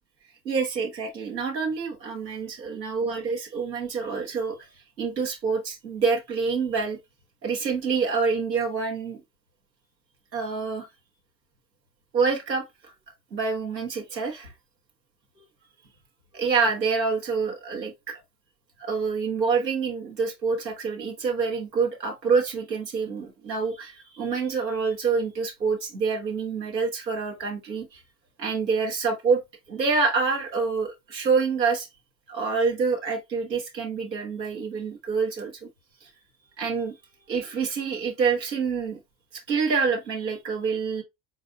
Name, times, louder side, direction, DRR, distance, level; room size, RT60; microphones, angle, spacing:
voice 1, 0.4-4.6 5.0-7.0 7.4-9.2 10.3-10.9 12.1-12.9 13.3-14.5 16.3-18.2 18.8-28.0 28.4-29.4 29.7-31.9 32.3-35.7 36.0-36.1 36.6-36.9 37.3-39.0 39.5-41.0, right 5 dB, 85° right, 1.0 m, -27 dB
4.0 x 3.9 x 2.6 m
figure-of-eight pair, 50°, 49 cm